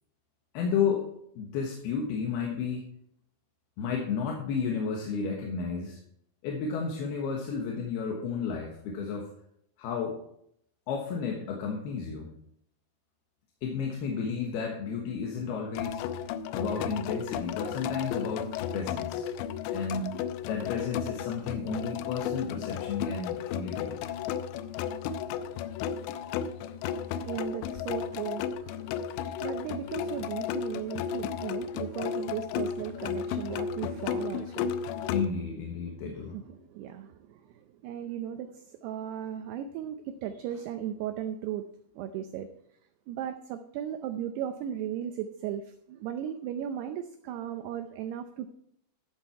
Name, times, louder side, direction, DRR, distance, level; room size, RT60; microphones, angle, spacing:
voice 1, 0.5-1.1 1.4-2.8 3.8-6.0 6.4-9.3 9.8-10.2 10.9-12.3 13.6-16.0 16.5-19.3 19.7-20.2 20.5-24.0 35.1-36.4, left 5 dB, 65° left, 0 dB, 2.9 m, -32 dB
sound 1, 15.7-35.3, left 8 dB, 85° left, 2.6 m, -34 dB
voice 2, 27.1-35.1 36.0-41.7 42.0-42.5 43.1-48.5, right 10 dB, 85° right, 8 dB, 2.4 m, -37 dB
13.0 x 7.8 x 4.5 m, 0.70 s
omnidirectional pair, 5.5 m